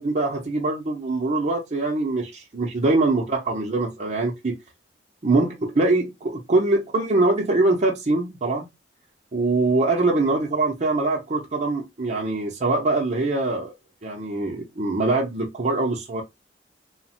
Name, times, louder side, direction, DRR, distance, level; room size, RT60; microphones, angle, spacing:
voice 1, 0.0-4.6 5.2-8.7 9.3-13.7 14.0-16.2, right 2 dB, 40° right, 0.6 m, -23 dB
3.1 x 2.0 x 2.9 m
head